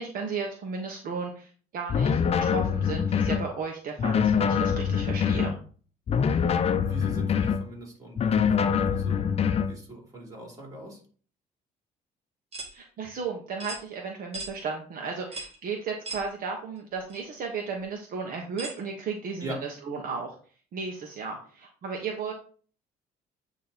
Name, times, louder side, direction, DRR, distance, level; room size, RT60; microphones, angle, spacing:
voice 1, 0.0-5.5 12.7-20.4 20.7-22.3, right 5 dB, 55° right, 1 dB, 1.2 m, -34 dB
sound 1, 1.9-3.5 4.0-5.6 6.1-7.7 8.2-9.7, left 7 dB, 35° left, 0.6 m, -24 dB
voice 2, 6.7-11.0 19.4-19.6, right 1 dB, 20° right, -1 dB, 3.2 m, -42 dB
sound 2, 12.5-12.7 13.6-13.8 14.3-14.5 15.3-15.6 16.0-16.3 17.1-17.2 18.6-18.8, right 3 dB, 35° right, 1.9 m, -37 dB
8.6 x 3.0 x 4.1 m, 0.42 s
cardioid pair, 110°, 17 cm